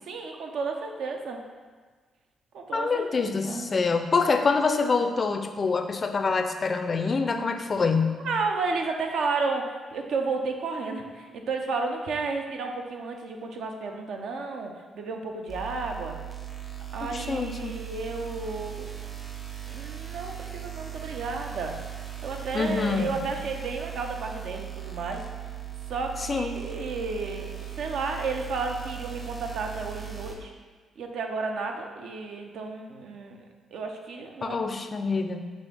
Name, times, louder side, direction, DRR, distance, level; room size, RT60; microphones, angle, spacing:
voice 1, 0.1-1.4 2.5-3.7 8.2-16.2 16.9-18.9 19.7-21.8 22.2-25.2 25.9-30.5 31.0-34.7, right 4 dB, 75° right, 3 dB, 0.5 m, -32 dB
voice 2, 2.7-8.2 17.1-17.7 22.5-23.1 26.3-26.5 34.4-35.4, left 4 dB, 40° left, 7 dB, 0.3 m, -26 dB
sound 1, 15.5-30.3, right 11 dB, 35° right, 0.8 m, -38 dB
5.5 x 2.5 x 3.4 m, 1.5 s
cardioid pair, 80°, 0 cm